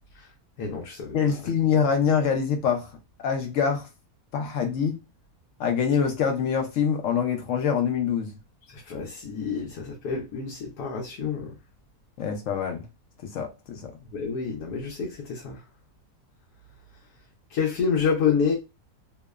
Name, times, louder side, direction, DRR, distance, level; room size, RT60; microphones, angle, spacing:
voice 1, 0.6-1.1 8.9-11.5 14.1-15.6 17.5-18.5, left 6 dB, 90° left, 1.2 m, -28 dB
voice 2, 1.1-2.9 3.2-3.9 4.3-5.0 5.6-8.3 12.2-12.9 13.3-13.9, left 7 dB, 70° left, 0.8 m, -25 dB
2.9 x 2.1 x 2.2 m
omnidirectional pair, 1.6 m